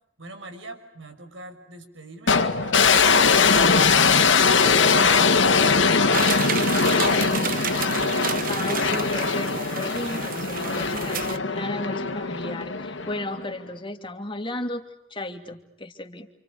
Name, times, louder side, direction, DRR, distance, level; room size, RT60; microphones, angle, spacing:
voice 1, 0.2-8.3, right 2 dB, 75° right, 7 dB, 5.8 m, -43 dB
sound 1, 2.3-13.5, left 5 dB, 75° left, 2.1 m, -21 dB
Hail window interior, 6.1-11.4, right 8 dB, 50° right, 1.0 m, -31 dB
voice 2, 8.5-16.3, left 2 dB, 25° left, 5 dB, 2.9 m, -34 dB
29.0 x 28.0 x 6.7 m, 0.78 s
head